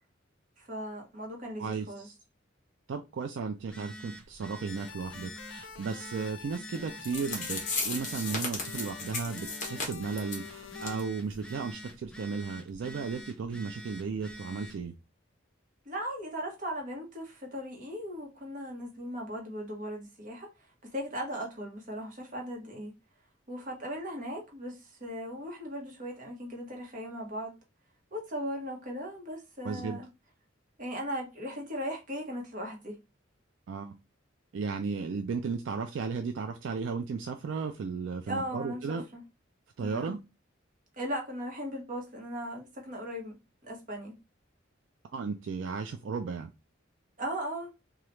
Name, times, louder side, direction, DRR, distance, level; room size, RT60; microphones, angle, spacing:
voice 1, 0.6-2.1 15.9-20.5 20.9-22.9 23.5-24.8 25.0-27.5 28.1-30.1 30.8-33.0 38.3-39.2 39.8-40.1 41.0-43.4 43.6-44.1 47.2-47.7, equal, 45° right, 1.0 m, -38 dB
voice 2, 1.6-2.1 2.9-14.9 29.6-30.0 33.7-33.9 34.5-39.0 39.8-40.2 45.1-46.5, right 5 dB, 75° right, 0.3 m, -35 dB
Telephone, 3.6-14.9, equal, 5° left, 0.4 m, -47 dB
sound 1, 4.7-11.0, left 7 dB, 80° left, 0.5 m, -47 dB
sound 2, 6.7-6.8 7.0-10.5 10.8-11.0 11.3-11.4 11.9-12.0, left 3 dB, 40° left, 0.9 m, -35 dB
2.9 x 2.3 x 3.1 m
head